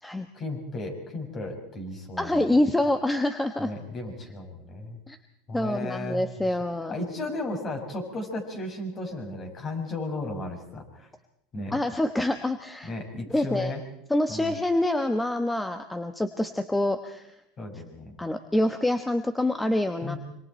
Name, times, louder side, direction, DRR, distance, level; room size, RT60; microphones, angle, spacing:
voice 1, 0.3-2.5 3.6-5.0 5.5-6.5 6.9-11.1 11.5-11.8 12.8-13.8 14.3-14.6 17.6-18.2 20.0-20.2, left 2 dB, 30° left, 3 dB, 6.4 m, -35 dB
voice 2, 2.2-3.7 5.1-5.2 5.5-6.9 11.7-12.9 13.3-13.7 14.1-17.3 18.2-20.2, left 1 dB, 5° left, 8 dB, 1.2 m, -26 dB
25.5 x 25.0 x 4.4 m, 0.79 s
supercardioid pair, 120°, 0 cm